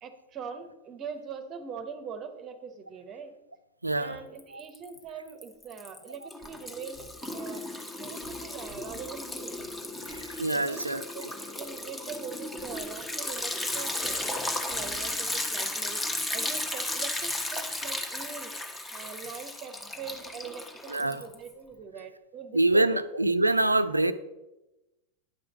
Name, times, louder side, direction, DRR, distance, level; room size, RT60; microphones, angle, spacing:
voice 1, 0.0-3.3 4.0-7.0 7.3-9.6 10.5-11.2 11.5-16.0 16.3-18.5 18.9-23.0, right 6 dB, 30° right, 8 dB, 0.9 m, -42 dB
voice 2, 3.8-4.2 4.5-4.6 10.1-11.3 20.9-21.2 22.5-24.1, right 2 dB, 85° right, 13 dB, 0.5 m, -25 dB
Liquid, 4.4-5.0 5.3-21.5, left 1 dB, 10° left, 1.1 m, -35 dB
9.9 x 5.0 x 7.1 m, 1.0 s
figure-of-eight pair, 90°, 0 cm